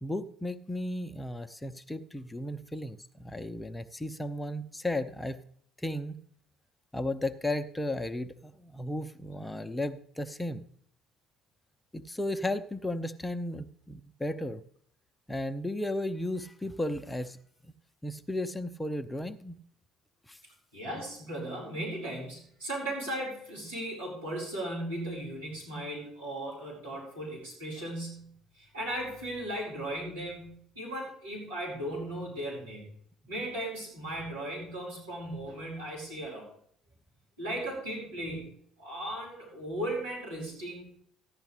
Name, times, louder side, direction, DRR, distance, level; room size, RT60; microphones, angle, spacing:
voice 1, 0.0-5.4 5.8-6.2 6.9-10.6 11.9-14.6 15.3-17.4 18.0-19.6 20.3-20.4, left 1 dB, 10° left, 9 dB, 0.7 m, -34 dB
voice 2, 20.7-32.8 33.3-36.5 37.4-41.0, right 1 dB, 90° right, -7 dB, 4.7 m, -37 dB
15.0 x 10.5 x 3.3 m, 0.63 s
hypercardioid pair, 60°, 0 cm